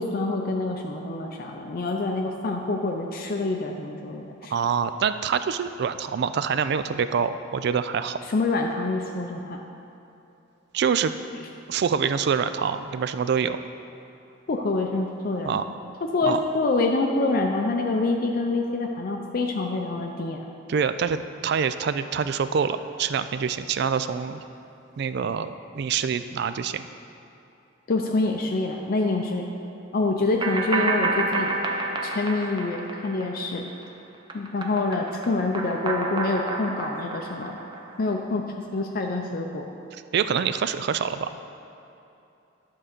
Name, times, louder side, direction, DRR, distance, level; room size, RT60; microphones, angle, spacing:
voice 1, 0.0-4.5 8.3-9.6 14.5-15.6 16.0-20.4 27.9-29.5 29.9-31.5 32.0-33.7 34.3-37.6 38.0-38.4 38.7-39.6, left 3 dB, 50° left, 2 dB, 0.5 m, -26 dB
voice 2, 4.5-8.2 10.7-11.1 11.7-13.6 15.4-15.6 16.3-16.4 20.7-24.4 25.0-26.9 40.1-41.4, right 6 dB, 60° right, 11 dB, 0.3 m, -25 dB
sound 1, 30.4-33.8 34.1-38.1, right 3 dB, 25° right, 0.7 m, -29 dB
11.0 x 3.8 x 6.6 m, 2.8 s
head